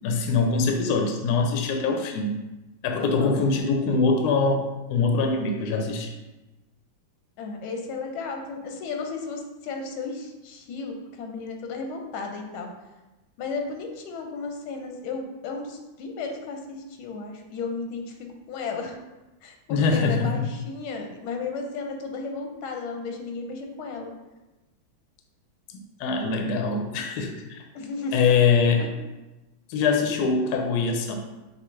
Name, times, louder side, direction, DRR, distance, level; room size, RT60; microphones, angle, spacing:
voice 1, 0.0-2.4 2.8-6.1 19.7-20.4 26.0-27.6 28.1-28.8 29.7-31.1, left 4 dB, 70° left, 3 dB, 1.0 m, -23 dB
voice 2, 3.0-3.4 7.4-12.7 13.4-18.2 18.5-19.0 19.4-24.1 27.7-28.2 28.8-28.9, left 4 dB, 90° left, 3 dB, 1.6 m, -34 dB
6.7 x 2.4 x 3.2 m, 1.1 s
omnidirectional pair, 2.2 m